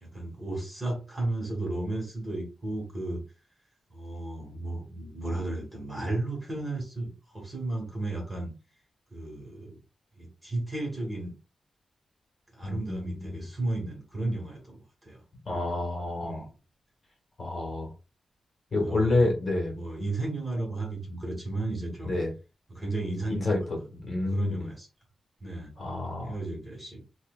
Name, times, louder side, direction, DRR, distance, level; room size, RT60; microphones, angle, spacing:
voice 1, 0.0-3.2 3.9-8.5 9.1-9.8 10.2-11.3 12.5-15.2 16.2-16.5 18.8-19.3 19.7-22.2 22.7-23.6 24.3-24.9 25.4-25.7 26.2-27.0, right 2 dB, 15° right, -1 dB, 1.3 m, -34 dB
voice 2, 12.6-13.3 15.5-16.4 17.4-17.9 18.7-19.7 22.0-22.3 23.3-23.8 24.0-24.7 25.8-26.4, left 2 dB, 35° left, -1 dB, 1.2 m, -28 dB
5.5 x 2.2 x 2.3 m, 0.33 s
wide cardioid pair, 160°, 0 cm